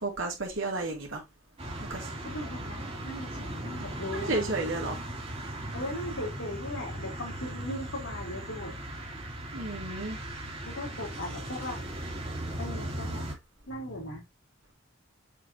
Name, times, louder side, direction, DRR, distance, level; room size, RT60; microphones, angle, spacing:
voice 1, 0.0-1.2 1.9-2.1 4.1-5.0 9.5-10.2, right 2 dB, 65° right, 3.1 m, -32 dB
sound 1, 1.6-13.3, right 1 dB, 30° right, 2.5 m, -38 dB
voice 2, 2.2-4.6 5.7-8.7 10.7-11.8 12.6-13.4 13.7-14.2, left 1 dB, 75° left, 3.5 m, -38 dB
7.4 x 4.9 x 2.7 m
head